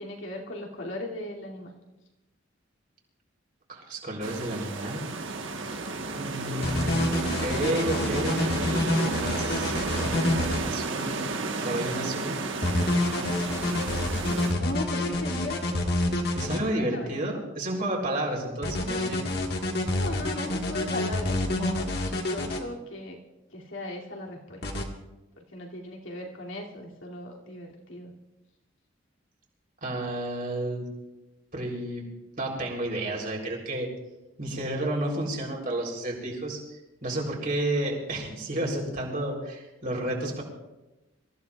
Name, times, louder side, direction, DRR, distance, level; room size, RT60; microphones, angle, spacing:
voice 1, 0.0-1.8 14.3-15.6 16.5-17.3 19.9-23.2 23.5-24.8 25.4-28.1, left 1 dB, 75° left, -2 dB, 2.7 m, -38 dB
voice 2, 3.7-5.0 6.2-11.2 11.6-12.5 16.3-19.2 29.8-30.9 31.5-32.0 32.4-33.9 34.4-40.4, right 1 dB, 45° right, -1 dB, 3.6 m, -31 dB
sound 1, 4.2-14.5, right 3 dB, 70° right, 1.3 m, -32 dB
sound 2, 6.6-10.6 12.6-16.6 18.6-22.6 24.6-24.8, left 1 dB, 55° left, 1.7 m, -27 dB
26.0 x 15.0 x 2.4 m, 1.0 s
head